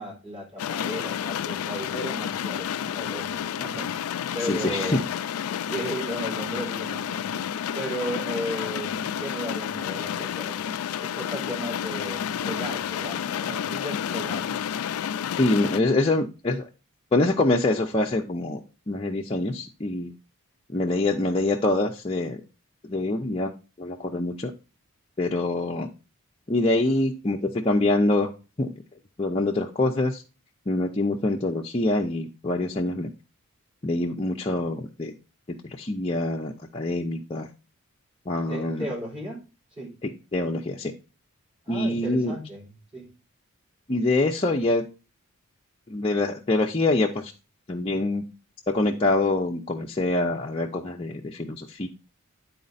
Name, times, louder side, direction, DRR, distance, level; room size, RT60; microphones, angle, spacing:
voice 1, 0.0-4.0 4.3-5.0 5.7-7.5 7.7-14.6 38.5-39.4 39.8-40.0 41.6-42.7 42.9-43.1, right 1 dB, 25° right, -4 dB, 4.4 m, -35 dB
sound 1, 0.6-15.8, left 9 dB, 80° left, 0.3 m, -30 dB
voice 2, 4.4-5.0 15.4-16.7 17.1-18.6 18.9-20.1 20.7-22.4 22.8-23.5 23.8-24.5 25.2-25.9 26.5-28.3 28.6-28.7 29.2-30.2 30.7-33.1 33.8-35.1 35.6-37.5 38.3-38.9 40.0-40.9 41.7-42.3 43.9-44.8 45.9-47.3 47.7-48.2 48.7-51.9, left 2 dB, 25° left, -1 dB, 0.6 m, -25 dB
9.9 x 4.2 x 4.0 m, 0.31 s
head